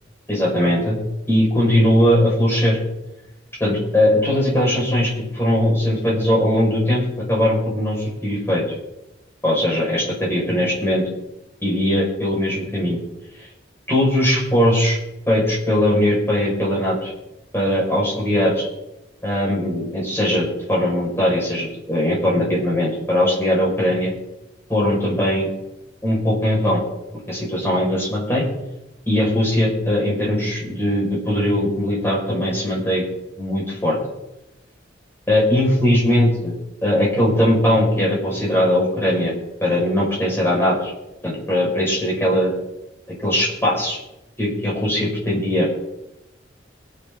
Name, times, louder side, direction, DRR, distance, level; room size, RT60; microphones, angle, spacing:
voice 1, 0.3-1.0 1.3-2.8 3.6-8.6 9.4-11.0 11.6-13.0 13.4-13.5 13.9-15.0 15.3-17.1 17.5-18.6 19.2-24.1 24.7-25.5 26.0-26.8 27.3-28.4 29.1-33.0 33.4-34.0 35.3-36.5 36.8-39.3 39.6-40.9 41.2-42.5 43.2-44.0 44.4-45.7, left 1 dB, 15° left, -4 dB, 4.9 m, -20 dB
23.5 x 8.6 x 3.7 m, 0.93 s
head